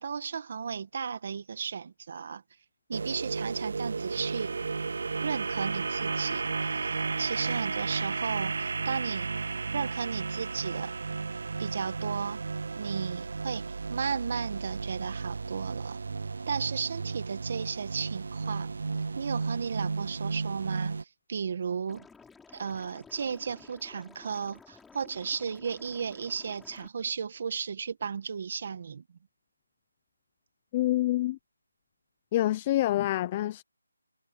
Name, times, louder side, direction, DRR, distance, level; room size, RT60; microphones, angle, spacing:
voice 1, 0.0-2.4 2.9-4.5 5.2-9.3 9.7-11.0 11.6-12.4 12.8-16.0 16.5-18.8 19.2-21.0 21.3-22.1 22.5-29.0, right 6 dB, 40° right, 1.8 m, -34 dB
sound 1, 2.9-21.0, right 4 dB, 55° right, 0.4 m, -33 dB
Liquid, 21.9-26.9, left 5 dB, 5° left, 4.2 m, -54 dB
voice 2, 30.7-31.4 32.3-33.6, left 15 dB, 20° left, 0.6 m, -26 dB
figure-of-eight pair, 170°, 0 cm